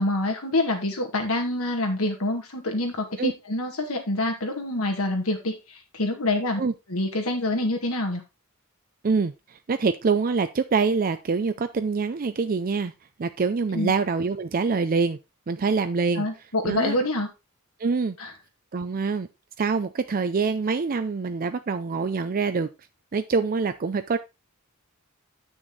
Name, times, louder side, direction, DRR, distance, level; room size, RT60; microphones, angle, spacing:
voice 1, 0.0-6.6 6.9-8.2 13.7-13.9 16.2-17.3 18.2-18.3, left 1 dB, 75° left, 2.3 m, -26 dB
voice 2, 9.0-12.9 13.2-15.2 15.5-16.3 16.6-17.0 17.8-18.2 18.7-19.3 19.6-22.7 23.1-24.2, right 4 dB, 40° right, 0.5 m, -25 dB
8.1 x 6.2 x 3.9 m
head